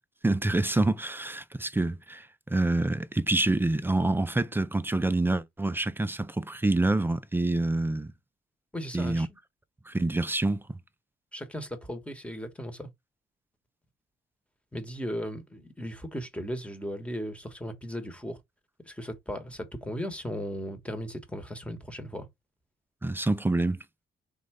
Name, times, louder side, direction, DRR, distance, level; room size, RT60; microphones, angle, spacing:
voice 1, 0.2-8.1 8.9-9.3 9.9-10.6 23.0-23.8, right 2 dB, 10° right, 0.5 m, -27 dB
voice 2, 8.7-9.3 11.3-12.9 14.7-18.4 18.8-22.3, equal, 5° left, 1.4 m, -36 dB
3.8 x 3.7 x 3.3 m
cardioid pair, 90°, 20 cm